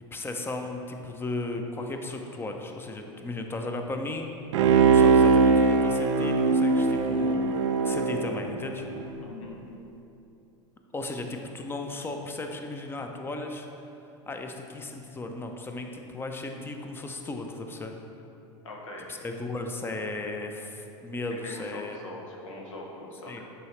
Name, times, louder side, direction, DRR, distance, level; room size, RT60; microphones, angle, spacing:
voice 1, 0.1-4.4 4.9-8.9 10.9-13.7 14.3-17.9 19.1-22.0 23.3-23.4, left 2 dB, 15° left, 4 dB, 0.6 m, -35 dB
Bowed string instrument, 4.5-9.1 9.5-9.6, right 4 dB, 75° right, 0.5 m, -21 dB
voice 2, 9.2-9.6 18.6-19.1 21.3-23.4, left 2 dB, 80° left, -1 dB, 1.1 m, -41 dB
6.8 x 5.0 x 3.2 m, 2.8 s
hypercardioid pair, 95°, 16 cm